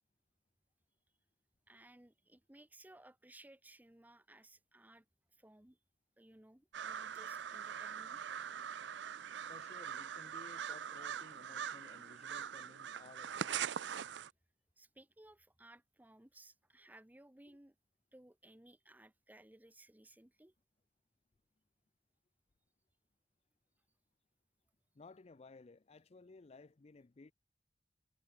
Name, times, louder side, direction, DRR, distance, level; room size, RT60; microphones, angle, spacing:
voice 1, 1.7-5.1 5.3-5.8 6.2-8.2 14.8-17.7 18.1-20.5, right 1 dB, 10° right, 0.8 m, -60 dB
sound 1, 6.7-14.3, right 8 dB, 75° right, 0.5 m, -42 dB
voice 2, 9.5-13.7 24.9-27.3, left 3 dB, 35° left, 0.5 m, -58 dB
head